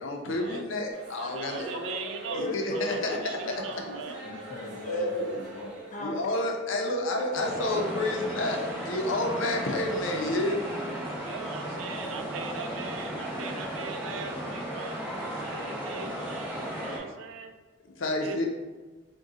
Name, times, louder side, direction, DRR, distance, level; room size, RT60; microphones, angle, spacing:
voice 1, 0.0-1.7 2.3-3.6 4.0-4.2 4.8-5.4 6.0-8.6 8.8-10.8 17.8-18.4, left 1 dB, 85° left, 1 dB, 0.6 m, -30 dB
sound 1, 0.9-6.1, right 1 dB, 55° right, 0.8 m, -44 dB
voice 2, 1.2-4.2 11.2-15.0 15.2-17.5 18.2-18.4, right 5 dB, 85° right, 7 dB, 0.4 m, -40 dB
voice 3, 2.3-3.2 3.8-4.0 4.2-6.4, left 1 dB, 40° left, -1 dB, 0.4 m, -37 dB
sound 2, 7.3-17.0, right 1 dB, 10° right, 0.7 m, -35 dB
3.9 x 2.3 x 3.6 m, 1.3 s
head